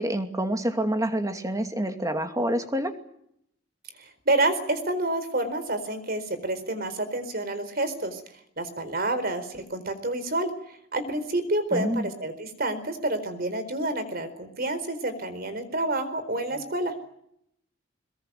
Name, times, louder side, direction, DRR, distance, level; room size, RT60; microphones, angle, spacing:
voice 1, 0.0-2.9 11.7-12.1, right 1 dB, 20° right, 6 dB, 2.5 m, -27 dB
voice 2, 4.0-8.2 8.6-10.5 10.9-16.9, right 2 dB, 50° right, 10 dB, 4.3 m, -28 dB
22.5 x 21.5 x 9.2 m, 0.74 s
head